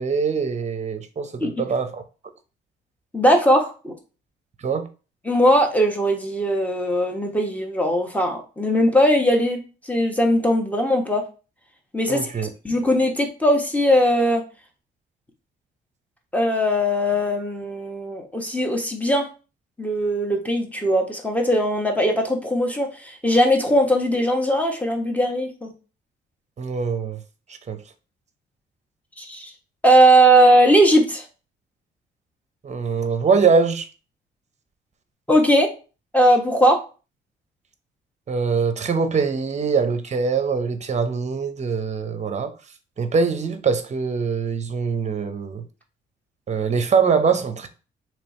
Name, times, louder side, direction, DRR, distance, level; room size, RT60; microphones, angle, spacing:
voice 1, 0.0-2.0 4.6-4.9 12.1-12.5 26.6-27.2 27.5-27.8 32.6-33.9 38.3-42.5 43.0-45.6 46.5-47.7, right 5 dB, 35° right, 0.8 m, -23 dB
voice 2, 3.1-3.9 5.2-11.2 11.9-12.2 12.6-14.4 16.3-19.3 19.8-25.7 29.2-29.5 29.8-31.2 35.3-35.7 36.1-36.8, equal, 5° left, 1.1 m, -19 dB
3.3 x 3.1 x 4.2 m
cardioid pair, 90°, 20 cm